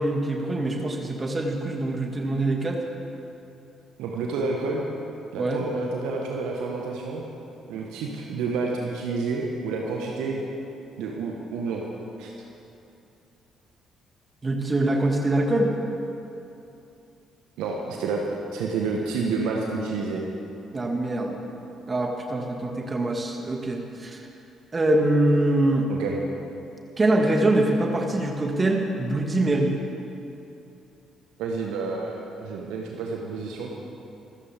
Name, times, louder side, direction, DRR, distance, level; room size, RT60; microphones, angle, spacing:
voice 1, 0.0-2.8 5.4-5.7 14.4-15.7 20.7-21.4 21.9-24.3 24.7-25.9 27.0-29.7, right 1 dB, 30° right, 1 dB, 2.2 m, -24 dB
voice 2, 4.0-4.9 5.3-7.2 7.7-10.4 11.0-11.8 12.2-12.3 17.6-18.2 18.5-20.2 25.9-26.2 31.4-33.7, right 4 dB, 70° right, -1 dB, 1.5 m, -29 dB
26.0 x 13.5 x 3.7 m, 2.8 s
figure-of-eight pair, 45°, 0 cm